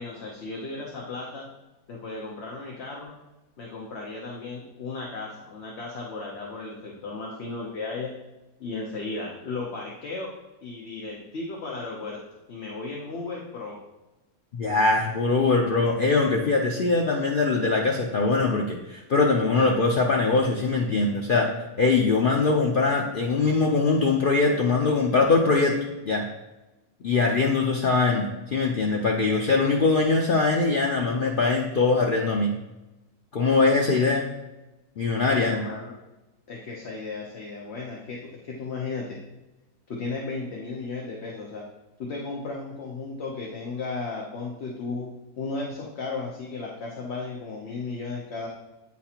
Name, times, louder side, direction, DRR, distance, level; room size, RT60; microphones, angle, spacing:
voice 1, 0.0-1.5 1.9-3.2 3.6-8.1 8.6-10.3 10.6-12.2 12.5-13.8 35.3-35.9 36.5-39.2 39.9-41.7 42.0-45.1 45.4-48.5, left 3 dB, 55° left, -2 dB, 0.9 m, -35 dB
voice 2, 14.5-21.5 21.8-25.8 26.0-26.3 27.0-32.5 33.3-34.2 35.0-35.6, left 3 dB, 70° left, 0 dB, 0.5 m, -22 dB
8.7 x 4.2 x 2.8 m, 1.0 s
omnidirectional pair, 1.6 m